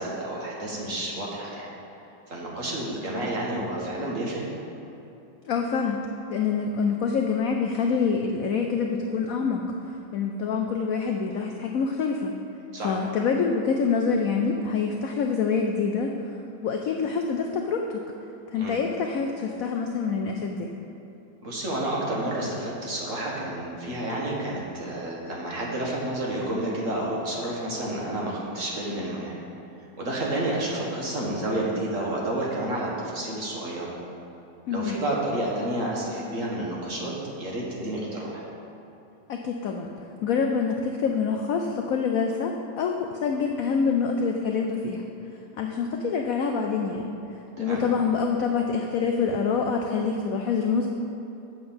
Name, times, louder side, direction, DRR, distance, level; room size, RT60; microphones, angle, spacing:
voice 1, 0.0-1.7 2.3-4.5 12.7-13.0 18.5-18.7 21.4-29.3 30.0-33.9 34.7-37.1 37.4-38.4 47.6-47.8, right 1 dB, 45° right, -4 dB, 1.7 m, -30 dB
voice 2, 5.5-6.0 6.3-9.6 9.9-12.3 12.8-16.1 16.6-18.0 18.5-20.7 34.7-35.0 39.3-39.9 40.2-45.0 45.6-47.1 47.6-50.9, left 5 dB, 75° left, 2 dB, 0.8 m, -26 dB
7.6 x 5.7 x 7.0 m, 2.8 s
omnidirectional pair, 2.1 m